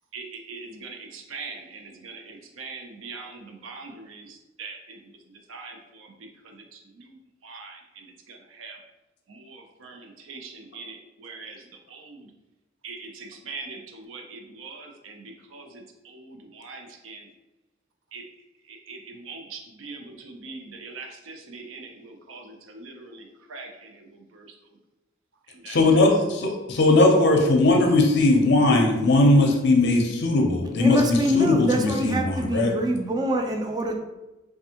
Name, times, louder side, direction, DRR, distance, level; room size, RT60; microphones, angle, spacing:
voice 1, 0.1-8.8 9.3-12.3 12.8-17.3 18.1-18.3 18.7-24.5 25.5-26.1, right 4 dB, 85° right, 3 dB, 0.5 m, -42 dB
voice 2, 25.7-32.7, left 2 dB, 60° left, 2 dB, 0.5 m, -19 dB
voice 3, 30.8-34.0, equal, 20° right, 3 dB, 0.3 m, -25 dB
3.3 x 2.3 x 2.8 m, 1.0 s
head